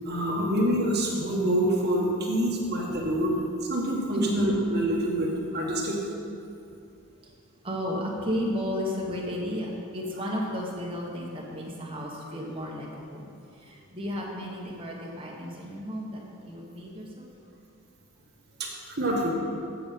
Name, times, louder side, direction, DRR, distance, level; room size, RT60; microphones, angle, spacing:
voice 1, 0.0-3.4 3.7-6.0 18.6-18.7 19.0-19.3, right 1 dB, 50° right, -3 dB, 1.6 m, -26 dB
voice 2, 7.6-13.3 13.6-17.3, equal, 25° right, -3 dB, 1.3 m, -33 dB
8.1 x 7.0 x 5.3 m, 2.5 s
head